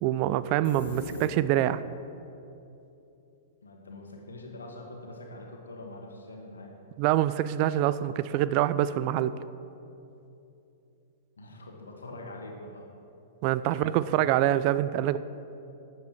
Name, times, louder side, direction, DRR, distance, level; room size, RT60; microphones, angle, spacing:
voice 1, 0.0-1.8 7.0-9.3 13.4-15.2, right 13 dB, 40° right, 15 dB, 0.3 m, -25 dB
sound 1, 0.6-1.9, left 2 dB, 60° left, 1.4 m, -39 dB
voice 2, 3.6-6.8 11.4-12.9 13.7-14.1, left 1 dB, 75° left, 1 dB, 1.6 m, -44 dB
12.0 x 7.9 x 4.5 m, 2.8 s
figure-of-eight pair, 100°, 0 cm